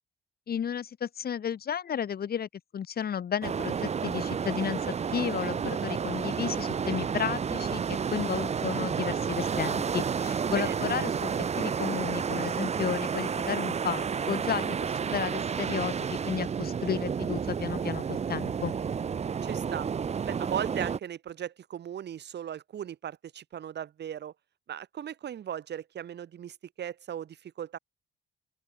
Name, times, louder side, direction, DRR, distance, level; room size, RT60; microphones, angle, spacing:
voice 1, 0.5-4.8 5.1-18.7, left 8 dB, 50° left, 1.6 m, -33 dB
sound 1, 3.4-21.0, right 6 dB, 35° right, 0.7 m, -31 dB
voice 2, 10.6-10.9 19.4-19.9 20.3-24.3 24.7-27.8, right 9 dB, 60° right, 1.6 m, -37 dB
open air
cardioid pair, 90°, 20 cm